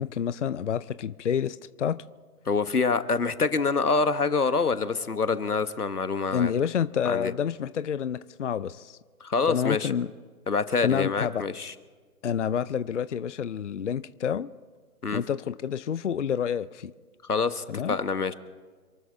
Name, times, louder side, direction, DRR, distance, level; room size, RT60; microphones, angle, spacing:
voice 1, 0.0-2.0 6.3-9.0 9.5-10.1 10.8-11.4 12.2-14.5 15.1-16.9 17.7-18.0, left 8 dB, 55° left, 15 dB, 0.6 m, -28 dB
voice 2, 2.5-6.5 7.0-7.3 9.2-9.9 10.5-11.7 15.0-15.2 17.3-18.3, left 4 dB, 90° left, 12 dB, 1.4 m, -26 dB
28.0 x 12.5 x 3.6 m, 1.5 s
figure-of-eight pair, 145°, 44 cm